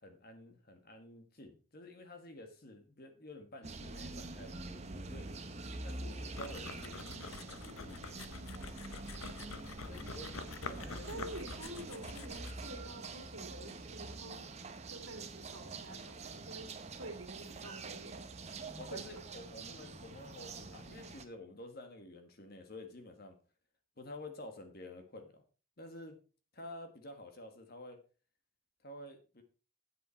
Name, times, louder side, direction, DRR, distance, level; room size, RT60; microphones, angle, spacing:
voice 1, 0.0-5.3 5.8-8.1 9.8-10.3 10.7-11.3 18.8-23.4 24.0-25.4 25.8-26.2 26.5-28.0 28.8-29.4, left 1 dB, 45° left, 6 dB, 1.5 m, -50 dB
sound 1, 3.6-21.2, right 3 dB, 30° right, 0.8 m, -46 dB
sound 2, 6.4-12.7, left 4 dB, 80° left, 0.8 m, -47 dB
voice 2, 9.8-10.3 11.1-16.7 17.0-18.2 18.9-19.0 19.3-19.4, right 1 dB, 85° right, 5 dB, 2.3 m, -49 dB
8.5 x 7.7 x 4.4 m, 0.35 s
head